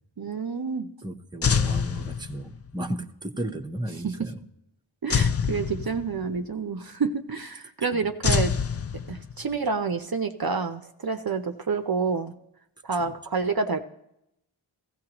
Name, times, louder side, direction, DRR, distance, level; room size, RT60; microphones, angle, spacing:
voice 1, 0.2-0.9 4.0-4.3 5.0-8.5 9.1-12.3 12.8-13.8, right 4 dB, 45° right, 6 dB, 0.7 m, -28 dB
voice 2, 1.0-4.4 7.9-8.0, right 1 dB, 10° right, 4 dB, 0.8 m, -34 dB
sound 1, 1.4-2.7 5.1-6.4 8.2-9.5, left 6 dB, 30° left, 0.4 m, -26 dB
15.5 x 15.0 x 2.9 m, 0.82 s
wide cardioid pair, 45°, 49 cm